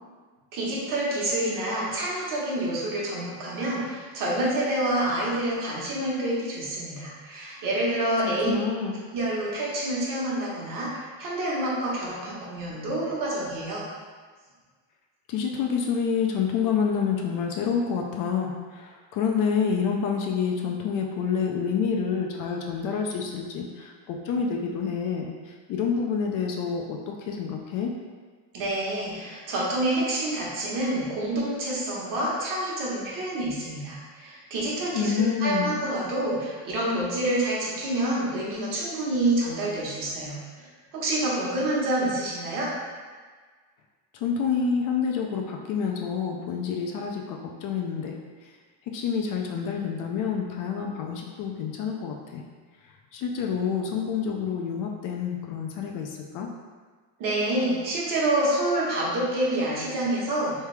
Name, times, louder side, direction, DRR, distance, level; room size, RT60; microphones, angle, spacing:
voice 1, 0.5-8.5 9.1-13.9 28.5-40.7 40.9-42.7 57.2-60.5, right 1 dB, 50° right, -5 dB, 1.2 m, -27 dB
voice 2, 8.2-9.0 15.3-27.9 34.9-35.7 44.1-48.2 48.4-48.5 48.9-52.4 52.8-56.5, left 6 dB, 50° left, 1 dB, 0.5 m, -28 dB
3.4 x 3.3 x 3.2 m, 1.5 s
cardioid pair, 145°, 43 cm